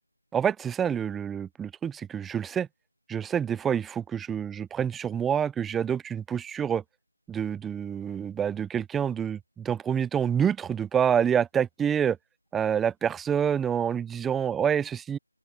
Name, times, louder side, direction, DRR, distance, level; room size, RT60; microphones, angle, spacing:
voice 1, 0.3-2.7 3.1-6.8 7.3-12.2 12.5-15.2, right 8 dB, 5° right, 0.4 m, -27 dB
open air
figure-of-eight pair, 170°, 0 cm